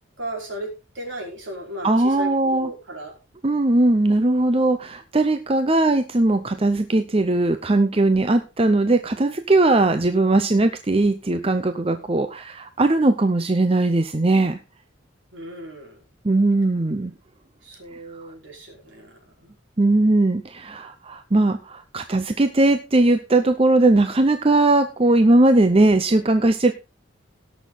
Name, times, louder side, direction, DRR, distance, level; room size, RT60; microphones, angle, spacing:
voice 1, 0.2-3.1 15.3-16.0 17.6-19.5, right 1 dB, 65° right, 1 dB, 4.8 m, -36 dB
voice 2, 1.8-2.7 3.4-14.6 16.2-17.1 18.2-18.3 19.8-26.7, right 2 dB, 30° right, 9 dB, 0.7 m, -19 dB
17.5 x 6.5 x 3.9 m, 0.28 s
head